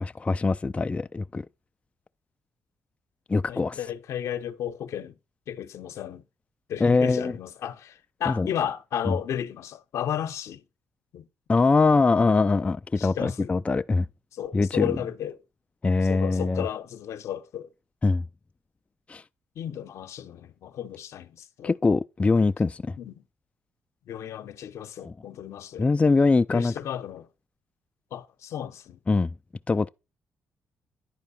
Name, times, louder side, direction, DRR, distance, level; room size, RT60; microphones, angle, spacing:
voice 1, 0.0-1.5 3.3-3.8 6.8-7.3 8.3-8.5 9.1-9.2 11.5-14.1 14.5-14.9 15.8-16.6 18.0-18.2 19.1-19.2 21.6-23.0 25.0-25.1 25.8-26.7 29.1-29.3 29.7-29.9, left 3 dB, 25° left, 0.3 m, -23 dB
voice 2, 3.5-5.2 5.5-6.2 6.7-10.6 11.1-11.3 13.0-13.5 14.3-15.4 16.0-17.7 19.6-21.7 23.0-23.2 24.1-25.9 26.5-27.3 28.1-29.0, left 9 dB, 75° left, 0.8 m, -33 dB
10.5 x 4.5 x 4.1 m
supercardioid pair, 60°, 5 cm